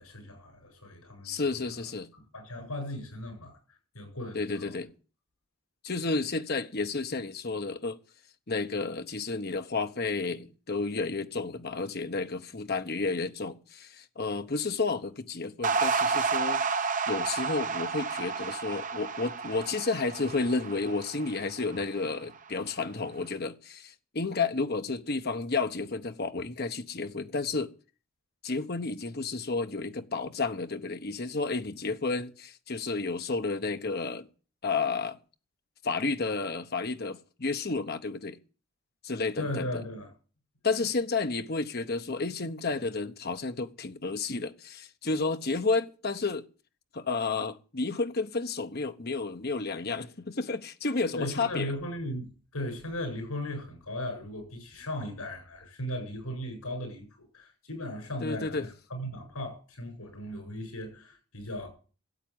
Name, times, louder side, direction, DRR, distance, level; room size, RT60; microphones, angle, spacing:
voice 1, 0.0-1.8 2.3-3.6 3.9-4.7 39.4-40.1 51.1-61.7, left 1 dB, 90° left, 7.9 m, -37 dB
voice 2, 1.2-2.1 4.3-4.9 5.8-8.0 8.5-16.6 17.1-27.7 28.4-34.3 34.6-35.2 35.8-38.4 39.0-39.7 40.6-46.5 46.9-51.7 58.2-58.7, left 3 dB, 45° left, 1.0 m, -31 dB
sound 1, 15.6-22.1, right 5 dB, 35° right, 0.7 m, -31 dB
13.5 x 8.3 x 9.3 m
head